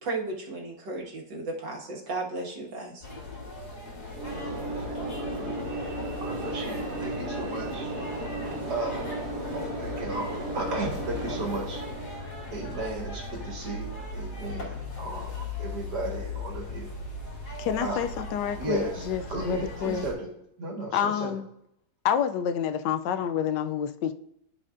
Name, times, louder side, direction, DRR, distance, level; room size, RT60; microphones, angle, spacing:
voice 1, 0.0-3.0, right 3 dB, 90° right, -2 dB, 2.3 m, -34 dB
sound 1, 3.0-20.1, left 2 dB, 65° left, 3.0 m, -39 dB
Train / Engine / Alarm, 4.1-12.4, right 1 dB, 45° right, 1.1 m, -34 dB
voice 2, 5.4-7.9 8.7-9.1 9.8-11.8 12.5-16.9 17.8-18.0 18.6-20.3 20.6-21.3, right 2 dB, 70° right, 1 dB, 2.2 m, -35 dB
voice 3, 17.6-20.1 20.9-21.5 22.0-24.1, left 8 dB, 80° left, 10 dB, 1.2 m, -28 dB
14.0 x 5.0 x 2.5 m, 0.76 s
omnidirectional pair, 1.9 m